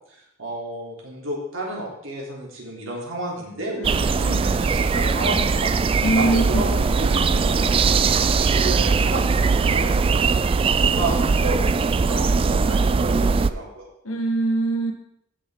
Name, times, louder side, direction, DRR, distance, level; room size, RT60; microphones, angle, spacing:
voice 1, 0.1-5.7 6.1-6.7 7.0-7.6 8.3-10.0 10.7-11.6 11.8-13.9, right 1 dB, 80° right, -3 dB, 3.3 m, -31 dB
voice 2, 3.8-4.6 6.0-6.7 14.0-14.9, right 2 dB, 90° left, 2 dB, 1.9 m, -24 dB
sound 1, 3.8-13.5, right 4 dB, 25° right, 0.3 m, -20 dB
15.0 x 6.5 x 3.8 m, 0.77 s
head